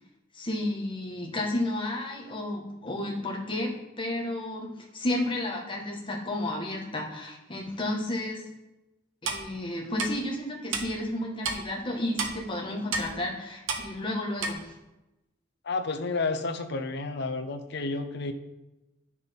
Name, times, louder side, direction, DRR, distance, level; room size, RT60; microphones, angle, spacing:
voice 1, 0.3-8.4 9.2-14.7, left 1 dB, 25° left, -2 dB, 1.5 m, -32 dB
Clock, 9.2-9.4 10.0-10.1 10.7-10.8 11.4-11.6 12.2-12.3 12.9-13.1 13.7-13.8 14.4-14.5, right 4 dB, 85° right, 1.0 m, -29 dB
voice 2, 15.6-18.3, left 3 dB, 60° left, 9 dB, 0.7 m, -31 dB
9.6 x 6.5 x 3.6 m, 1.0 s
head